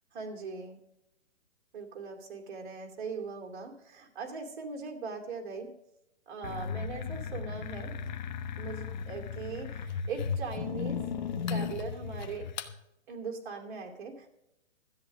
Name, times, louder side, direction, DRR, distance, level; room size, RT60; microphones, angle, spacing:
voice 1, 0.1-0.8 1.7-5.7 6.3-7.9 8.6-11.0 11.5-12.5 13.1-14.3, right 4 dB, 45° right, 2 dB, 2.7 m, -40 dB
sound 1, 6.4-12.7, left 6 dB, 40° left, 0.9 m, -36 dB
13.5 x 8.4 x 6.3 m, 0.86 s
hypercardioid pair, 155°, 35 cm